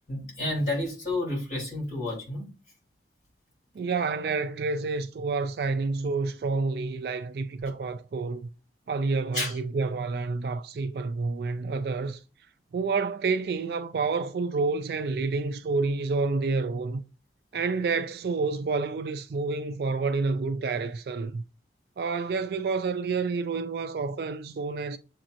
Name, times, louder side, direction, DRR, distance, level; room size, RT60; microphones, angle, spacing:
voice 1, 0.1-2.5 9.3-9.5, left 1 dB, 45° left, 2.9 m, -30 dB
voice 2, 3.7-8.5 8.9-12.2 12.7-17.0 17.5-21.4 22.0-25.0, right 4 dB, 60° right, 0.3 m, -29 dB
6.9 x 2.9 x 2.5 m
head